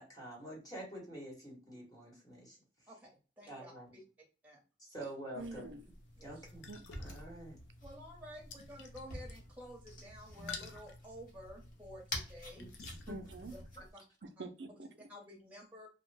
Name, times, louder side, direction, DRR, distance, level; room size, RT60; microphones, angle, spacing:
voice 1, 0.0-2.6 3.5-3.9 4.8-5.7 6.2-6.7 7.0-7.6 12.5-13.2 13.8-13.9, right 1 dB, 20° left, 1.0 m, -47 dB
voice 2, 3.4-3.7 4.4-4.6 6.2-6.4 7.8-12.7 14.4-14.5 15.1-15.9, equal, 10° right, 0.9 m, -51 dB
voice 3, 5.3-5.8 6.7-7.0 13.1-13.5 14.2-15.1, right 3 dB, 65° right, 0.5 m, -46 dB
sound 1, 5.4-13.9, left 1 dB, 45° left, 0.9 m, -49 dB
sound 2, 5.8-13.1, left 4 dB, 75° left, 0.5 m, -52 dB
3.0 x 2.1 x 3.2 m
head